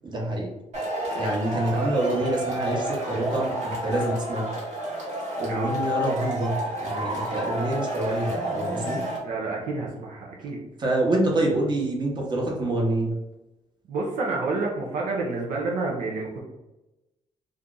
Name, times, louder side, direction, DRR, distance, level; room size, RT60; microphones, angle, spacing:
voice 1, 0.0-0.5 1.1-4.5 5.4-9.0 10.8-13.1, right 1 dB, 35° right, -2 dB, 1.0 m, -26 dB
Male speech man speaking / Shout / Clapping, 0.7-9.2, right 1 dB, 65° right, 1.3 m, -30 dB
voice 2, 9.1-10.6 13.9-16.4, right 3 dB, 80° right, -2 dB, 0.7 m, -29 dB
2.7 x 2.4 x 3.7 m, 0.99 s
cardioid pair, 95°, 13 cm